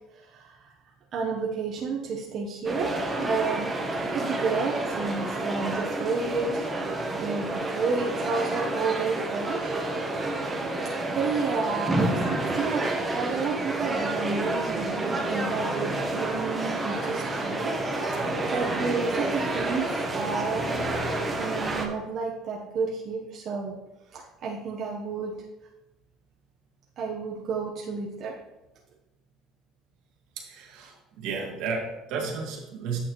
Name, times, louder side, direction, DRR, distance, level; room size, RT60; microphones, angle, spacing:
voice 1, 0.1-0.7 1.1-10.5 11.1-12.8 13.1-17.8 18.1-20.9 21.4-23.8 24.1-25.4 27.0-28.4, right 4 dB, 45° right, -3 dB, 1.0 m, -31 dB
sound 1, 2.7-21.9, right 2 dB, 15° right, 1.2 m, -29 dB
voice 2, 30.5-33.0, right 5 dB, 75° right, -1 dB, 1.8 m, -33 dB
8.9 x 6.3 x 3.1 m, 0.96 s
cardioid pair, 130°, 0 cm